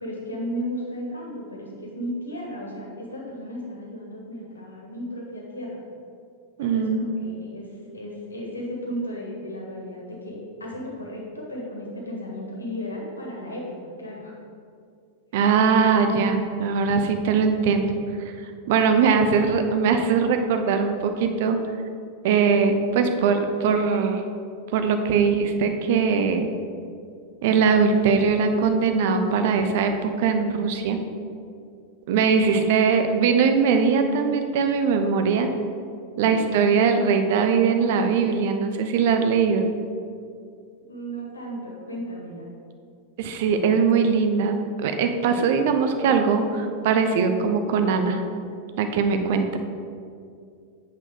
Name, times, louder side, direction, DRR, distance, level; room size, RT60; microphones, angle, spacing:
voice 1, 0.0-5.8 6.6-7.6 7.9-14.3 32.4-32.7 40.9-42.5, equal, 75° left, -2 dB, 1.7 m, -34 dB
voice 2, 6.6-7.0 15.3-17.9 18.7-21.6 22.2-24.2 24.7-26.5 27.4-31.0 32.1-35.5 36.2-39.7 43.2-44.6 44.8-48.2 48.8-49.6, right 5 dB, 50° right, 7 dB, 0.7 m, -21 dB
8.3 x 4.5 x 5.1 m, 2.4 s
figure-of-eight pair, 90°, 0 cm